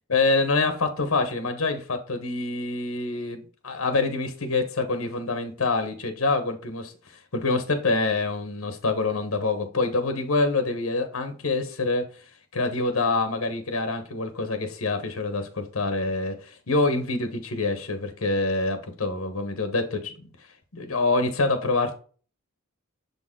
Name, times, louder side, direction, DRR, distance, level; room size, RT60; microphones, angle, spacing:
voice 1, 0.1-6.9 7.3-12.0 12.5-20.1 20.7-21.9, left 3 dB, 80° left, 1.1 m, -26 dB
6.9 x 4.1 x 3.7 m
head